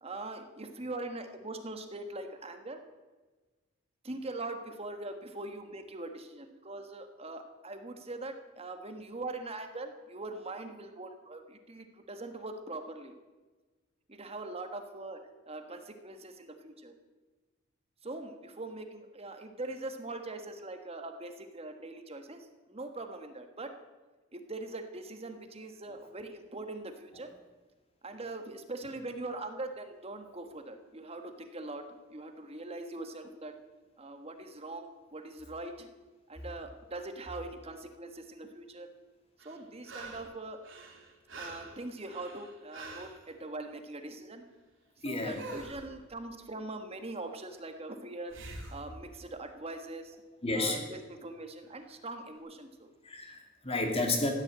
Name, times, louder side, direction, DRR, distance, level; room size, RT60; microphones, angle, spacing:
voice 1, 0.0-2.8 4.0-13.1 14.1-15.2 15.5-16.9 18.0-23.7 24.3-27.4 28.0-33.6 34.0-35.9 36.3-38.9 39.4-40.6 41.4-44.4 45.0-48.4 48.7-50.2 50.5-52.9, right 2 dB, 30° right, 6 dB, 1.5 m, -42 dB
sound 1, 39.4-40.3 40.6-43.2 45.3-45.9 48.3-48.8 51.7-51.8, right 2 dB, 70° right, 3.2 m, -45 dB
voice 2, 45.0-45.4 50.4-50.8 53.0-54.3, left 2 dB, 30° left, 3 dB, 2.6 m, -31 dB
15.5 x 9.8 x 8.7 m, 1.3 s
head